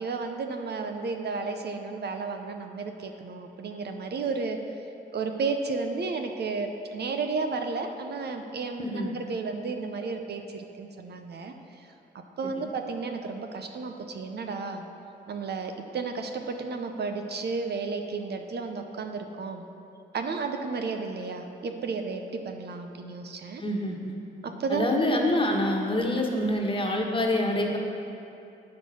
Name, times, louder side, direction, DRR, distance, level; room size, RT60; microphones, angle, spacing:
voice 1, 0.0-4.6 5.1-11.9 12.4-14.8 15.3-19.6 20.1-23.6 24.4-24.9, right 4 dB, 60° right, 5 dB, 0.7 m, -33 dB
voice 2, 8.8-9.1 12.6-12.7 23.6-24.2 24.7-27.8, left 1 dB, 25° left, 0 dB, 1.4 m, -26 dB
8.5 x 6.0 x 6.2 m, 2.8 s
cardioid pair, 70°, 19 cm